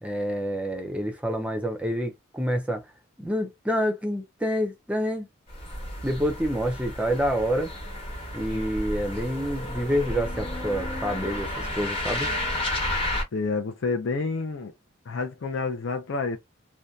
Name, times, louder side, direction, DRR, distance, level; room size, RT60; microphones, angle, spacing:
voice 1, 0.0-2.8 3.2-5.3 6.0-7.7 8.3-12.3, equal, 5° right, 0.4 m, -27 dB
sound 1, 5.5-13.2, left 1 dB, 25° left, 0.9 m, -32 dB
voice 2, 13.3-14.7 15.1-16.4, left 4 dB, 65° left, 0.5 m, -29 dB
2.6 x 2.2 x 2.2 m
head